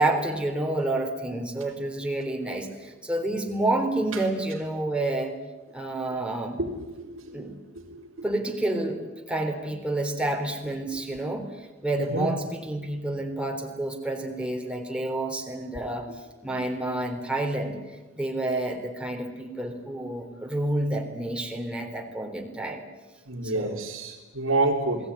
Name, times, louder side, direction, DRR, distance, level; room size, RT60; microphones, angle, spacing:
voice 1, 0.0-5.3 5.7-6.6 7.3-7.5 8.2-9.0 9.3-11.5 11.8-16.1 16.4-17.8 18.1-22.8 23.4-23.8, right 2 dB, 5° right, 2 dB, 3.8 m, -29 dB
voice 2, 6.6-8.3 12.0-12.4 23.3-25.1, right 2 dB, 75° right, -3 dB, 3.6 m, -29 dB
29.5 x 20.0 x 9.7 m, 1.2 s
head